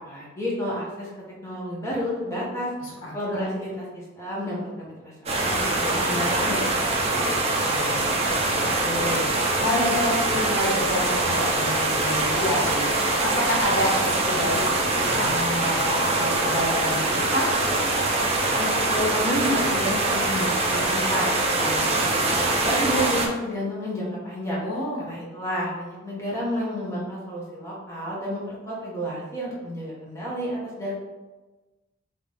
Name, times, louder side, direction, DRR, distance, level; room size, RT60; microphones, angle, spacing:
voice 1, 0.0-1.1 1.4-2.7 3.1-8.4 18.6-24.6 25.0-31.0, equal, 15° left, -6 dB, 1.0 m, -31 dB
voice 2, 2.8-3.5 8.5-9.2 9.6-17.5 24.6-25.1, left 1 dB, 75° left, -4 dB, 1.5 m, -28 dB
sound 1, 5.3-23.3, right 2 dB, 30° right, 0.5 m, -23 dB
3.9 x 3.0 x 3.4 m, 1.2 s
head